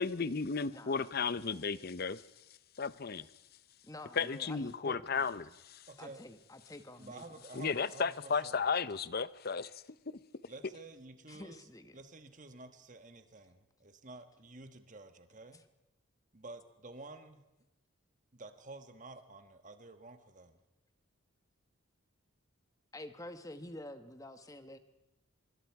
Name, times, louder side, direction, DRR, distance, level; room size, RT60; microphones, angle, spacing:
voice 1, 0.0-2.2 2.8-3.3 4.1-5.9 7.5-10.2, left 5 dB, 45° left, 0.7 m, -34 dB
voice 2, 0.7-1.1 3.8-5.3 6.0-7.2 11.3-12.0 15.5-15.6 22.9-24.8, left 1 dB, 15° left, 1.2 m, -48 dB
voice 3, 5.9-6.2 7.0-8.6 10.4-11.7 11.9-15.6 16.3-17.4 18.3-20.6, right 2 dB, 35° right, 1.4 m, -51 dB
25.0 x 23.0 x 4.7 m
head